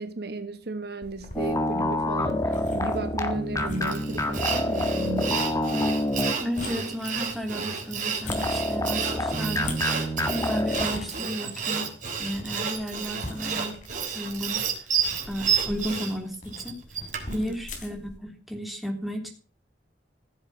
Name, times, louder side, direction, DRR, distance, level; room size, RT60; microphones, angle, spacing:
voice 1, 0.0-5.5 17.3-17.5, right 2 dB, 60° right, 1.3 m, -34 dB
sound 1, 1.0-18.2, left 2 dB, 45° left, 3.5 m, -43 dB
sound 2, 1.3-6.7 8.3-10.9, left 1 dB, 20° left, 1.7 m, -27 dB
Sawing, 3.8-17.4, right 6 dB, 45° right, 3.6 m, -31 dB
voice 2, 6.4-11.9 12.2-13.8 14.1-14.9 15.3-16.8 17.3-19.3, equal, ahead, 3.3 m, -33 dB
15.5 x 7.8 x 7.2 m
head